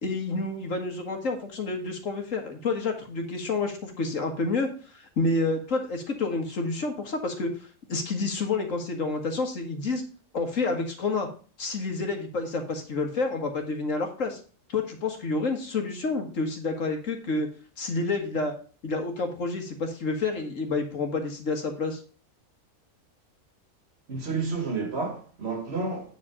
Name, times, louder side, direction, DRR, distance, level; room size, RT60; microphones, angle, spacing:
voice 1, 0.0-7.5 7.9-10.0 10.3-11.3 11.6-14.4 14.7-17.5 17.8-18.5 18.8-22.0, left 3 dB, 70° left, 2.0 m, -29 dB
voice 2, 24.1-26.2, right 4 dB, 55° right, 1.7 m, -30 dB
9.1 x 5.0 x 5.0 m
omnidirectional pair, 1.4 m